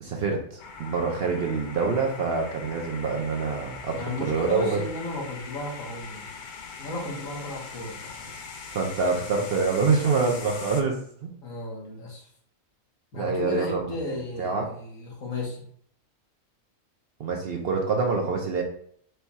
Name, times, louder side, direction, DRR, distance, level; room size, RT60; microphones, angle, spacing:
voice 1, 0.0-4.8 8.7-11.3 13.1-13.9 14.4-14.7 17.2-18.6, right 4 dB, 55° right, 2 dB, 0.7 m, -26 dB
sound 1, 0.6-10.8, left 5 dB, 60° left, 0.5 m, -41 dB
voice 2, 3.9-6.2 6.8-8.3 11.4-12.3 13.1-15.6, left 2 dB, 75° left, -3 dB, 1.7 m, -34 dB
4.5 x 2.3 x 4.1 m, 0.63 s
omnidirectional pair, 1.4 m